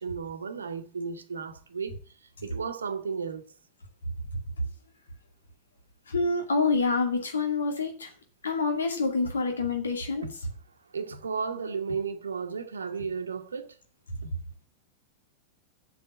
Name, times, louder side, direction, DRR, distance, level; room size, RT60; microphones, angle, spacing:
voice 1, 0.0-1.9 2.4-3.4 10.2-10.3 10.9-13.7 14.2-14.3, right 5 dB, 70° right, 1.2 m, -34 dB
voice 2, 6.1-8.1 8.4-10.3, left 4 dB, 70° left, 2.3 m, -27 dB
7.7 x 7.0 x 8.2 m
figure-of-eight pair, 90°, 0 cm